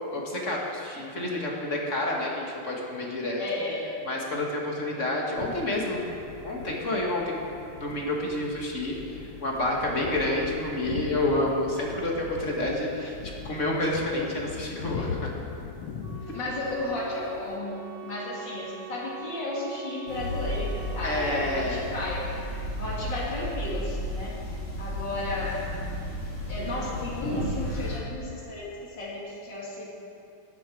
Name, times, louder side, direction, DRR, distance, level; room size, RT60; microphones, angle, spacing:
voice 1, 0.1-3.4 4.0-6.0 6.4-7.4 7.8-13.2 13.4-15.3 21.0-21.8, left 1 dB, 40° left, -2 dB, 1.6 m, -29 dB
voice 2, 3.4-4.0 16.2-22.2 22.8-24.4 24.8-25.7 26.5-29.9, left 2 dB, 55° left, -5 dB, 3.1 m, -34 dB
sound 1, 5.4-17.6, left 5 dB, 90° left, 1.8 m, -40 dB
Wind instrument woodwind instrument, 16.0-21.8, right 10 dB, 50° right, 1.5 m, -43 dB
sound 2, 20.1-28.0, left 1 dB, 75° left, 3.6 m, -33 dB
13.0 x 10.5 x 4.7 m, 2.7 s
omnidirectional pair, 2.4 m